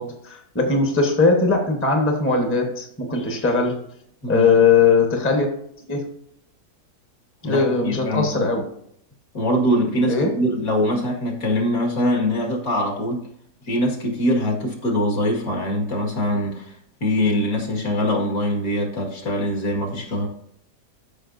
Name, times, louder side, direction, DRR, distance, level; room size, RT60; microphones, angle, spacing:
voice 1, 0.0-3.8 4.3-5.5 5.9-6.0 7.4-8.6 10.1-10.4, left 4 dB, 10° left, 3 dB, 1.0 m, -19 dB
voice 2, 7.4-8.5 9.3-13.3 13.6-16.7 17.0-20.3, left 1 dB, 55° left, 0 dB, 2.3 m, -23 dB
13.0 x 5.4 x 2.7 m, 0.69 s
omnidirectional pair, 1.8 m